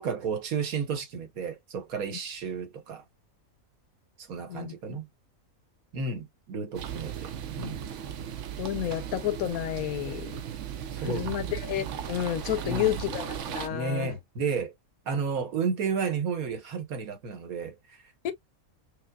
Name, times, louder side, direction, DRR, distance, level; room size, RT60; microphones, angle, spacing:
voice 1, 0.0-3.0 4.3-5.1 5.9-7.3 7.6-7.8 10.9-11.3 12.6-13.0 13.7-14.7 15.1-17.8, right 5 dB, 85° right, 1.5 m, -32 dB
sound 1, 6.7-13.7, right 9 dB, 65° right, 0.9 m, -36 dB
voice 2, 8.6-10.3 11.0-14.1 18.2-18.3, left 12 dB, 90° left, 1.2 m, -30 dB
5.6 x 2.1 x 2.3 m
omnidirectional pair, 1.5 m